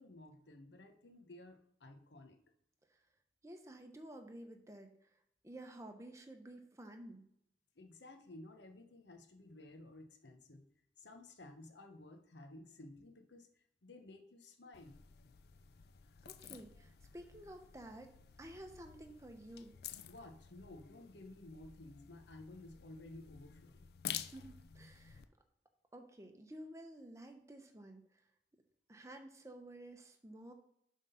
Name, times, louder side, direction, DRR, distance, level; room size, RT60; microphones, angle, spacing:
voice 1, 0.0-2.4 7.8-10.6 11.0-15.0 20.1-23.9, left 2 dB, 85° left, 5 dB, 1.0 m, -55 dB
voice 2, 3.4-5.1 5.4-7.2 16.2-18.1 18.4-19.8 24.3-25.2 25.9-28.2 28.9-30.5, right 1 dB, 15° right, 4 dB, 0.7 m, -52 dB
sound 1, 14.7-25.2, left 10 dB, 65° left, 0.4 m, -51 dB
7.3 x 3.7 x 5.6 m, 0.74 s
head